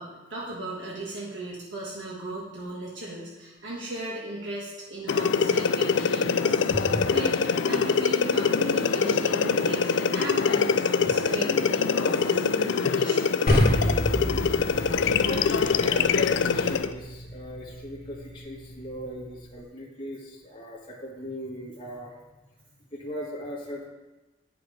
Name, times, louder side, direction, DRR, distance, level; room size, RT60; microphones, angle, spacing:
voice 1, 0.0-13.4, right 1 dB, 70° right, -5 dB, 1.5 m, -36 dB
sound 1, 5.1-16.9, left 5 dB, 70° left, 0.4 m, -24 dB
voice 2, 6.7-7.1 11.0-11.1 15.0-22.1 22.9-23.9, equal, 25° left, -5 dB, 1.8 m, -37 dB
sound 2, 13.5-19.6, equal, 45° left, 1.7 m, -30 dB
9.0 x 5.9 x 5.0 m, 1.1 s
head